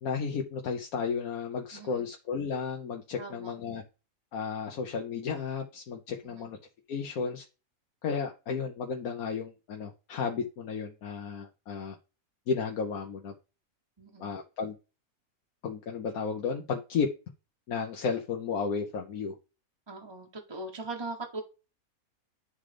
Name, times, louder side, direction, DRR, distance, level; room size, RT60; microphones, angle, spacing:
voice 1, 0.0-3.8 4.3-6.6 6.9-7.4 8.0-11.9 12.5-13.3 14.2-14.7 15.6-17.1 17.7-19.3, left 5 dB, 75° left, 1 dB, 1.3 m, -33 dB
voice 2, 1.7-2.1 3.2-3.5 6.2-6.5 14.0-14.3 19.9-21.4, right 2 dB, 25° right, 2 dB, 0.7 m, -40 dB
11.0 x 3.8 x 3.3 m, 0.31 s
omnidirectional pair, 1.5 m